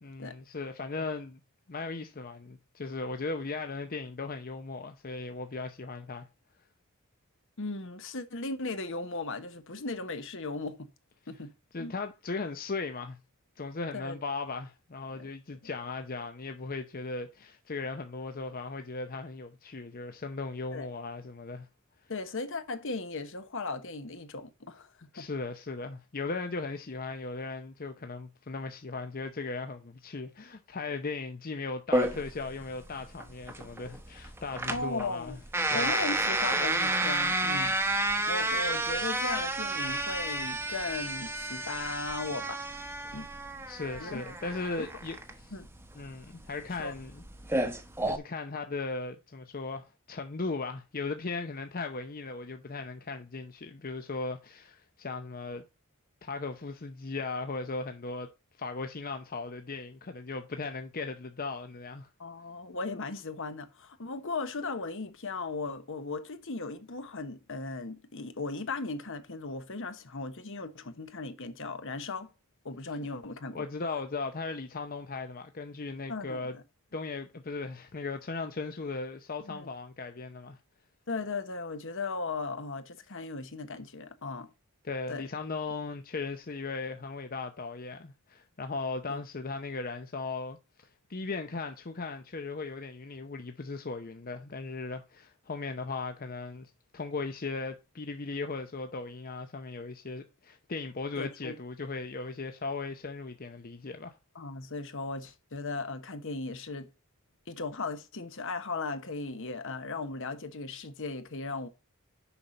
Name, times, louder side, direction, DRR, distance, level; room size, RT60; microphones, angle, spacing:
voice 1, 0.0-1.4 1.7-6.3 11.7-13.2 13.6-21.7 25.1-35.4 35.7-35.9 43.7-45.5 45.9-47.2 48.0-55.6 56.2-58.3 58.6-62.1 73.5-76.6 76.9-80.6 84.8-90.6 91.1-104.1, left 3 dB, 40° left, 0.7 m, -37 dB
voice 2, 7.6-10.9 11.3-11.5 11.8-11.9 13.9-14.2 15.1-15.3 20.7-20.9 22.1-25.3 34.7-35.4 35.7-37.8 38.3-42.6 43.1-43.3 44.0-44.2 44.8-44.9 45.5-45.7 46.8-46.9 62.2-72.3 72.6-73.7 76.1-76.6 79.4-79.7 81.1-84.5 85.1-85.3 89.1-89.2 101.1-101.6 104.3-106.9 107.5-111.7, left 3 dB, 60° left, 1.1 m, -37 dB
sound 1, 31.9-48.2, right 1 dB, 10° right, 1.0 m, -31 dB
7.0 x 5.8 x 5.1 m
head